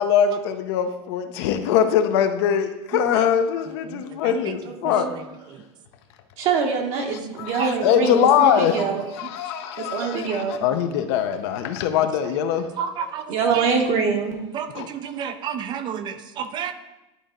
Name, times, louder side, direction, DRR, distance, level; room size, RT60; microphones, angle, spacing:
voice 1, 0.0-5.1 7.4-8.9 9.2-12.7 14.7-14.9, left 8 dB, 65° left, 8 dB, 0.7 m, -22 dB
voice 2, 2.9-3.2 3.9-4.6 4.8-4.9 5.5-5.6 7.6-7.7 12.8-13.7 14.5-16.7, right 7 dB, 30° right, 10 dB, 0.5 m, -31 dB
voice 3, 4.6-5.1 6.4-9.1 9.8-10.6 13.3-14.4, right 5 dB, 45° right, 1 dB, 1.0 m, -24 dB
11.0 x 4.0 x 3.8 m, 0.98 s
supercardioid pair, 150°, 15 cm